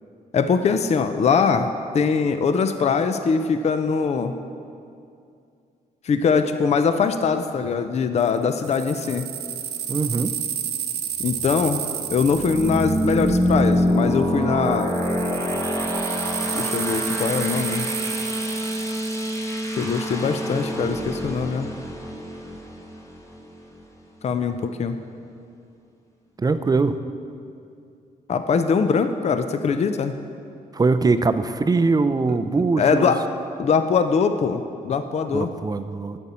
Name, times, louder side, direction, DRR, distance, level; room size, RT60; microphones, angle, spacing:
voice 1, 0.3-4.3 6.0-9.3 11.2-11.8 12.1-14.9 16.5-17.9 19.8-21.7 24.2-25.0 28.3-30.2 32.3-33.2 33.6-35.5, left 5 dB, 45° left, 9 dB, 0.5 m, -22 dB
sound 1, 8.2-14.1 14.6-20.0, right 9 dB, 85° right, 0.7 m, -31 dB
voice 2, 9.9-10.3 26.4-27.0 30.7-33.1 35.3-36.2, right 3 dB, 25° right, 11 dB, 0.4 m, -21 dB
sound 2, 11.2-23.8, equal, 20° left, 1.0 m, -26 dB
12.0 x 6.9 x 4.2 m, 2.5 s
cardioid pair, 95°, 16 cm